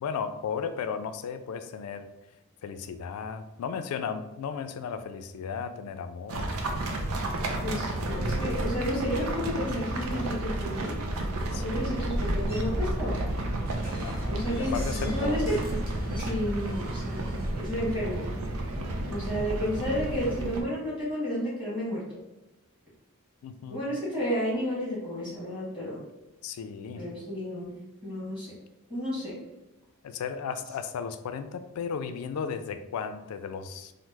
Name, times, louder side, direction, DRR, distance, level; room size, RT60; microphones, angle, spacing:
voice 1, 0.0-2.1 2.6-6.5 11.5-12.0 14.0-15.5 18.7-19.2 23.4-23.8 26.4-27.1 30.0-33.9, left 6 dB, 85° left, 13 dB, 0.3 m, -35 dB
sound 1, 6.3-20.6, right 1 dB, 85° right, 0.5 m, -31 dB
voice 2, 7.6-10.9 11.6-13.3 14.3-15.6 16.1-18.2 19.0-22.0 23.7-26.0 27.0-28.5 28.9-29.4, equal, 5° right, -9 dB, 1.2 m, -32 dB
sound 2, 12.5-17.5, right 1 dB, 40° right, 0.8 m, -38 dB
3.0 x 2.0 x 3.3 m, 0.99 s
head